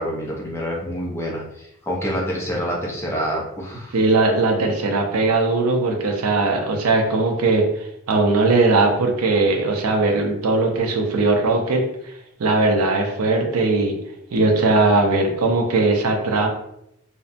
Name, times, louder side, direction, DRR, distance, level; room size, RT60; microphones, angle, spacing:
voice 1, 0.0-4.0, equal, 10° left, -3 dB, 0.4 m, -27 dB
voice 2, 3.9-7.7 8.1-11.8 12.4-14.0 14.3-16.5, right 3 dB, 85° right, 2 dB, 0.5 m, -19 dB
2.6 x 2.1 x 2.5 m, 0.80 s
head